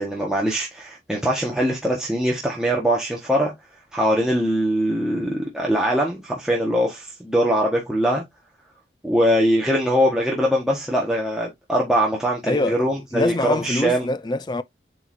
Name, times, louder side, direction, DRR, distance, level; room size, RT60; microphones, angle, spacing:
voice 1, 0.0-3.5 3.9-8.2 9.0-14.1, equal, 5° right, 1.4 m, -22 dB
voice 2, 12.4-12.8 13.1-14.6, left 2 dB, 25° left, 0.4 m, -24 dB
8.0 x 4.6 x 2.6 m
head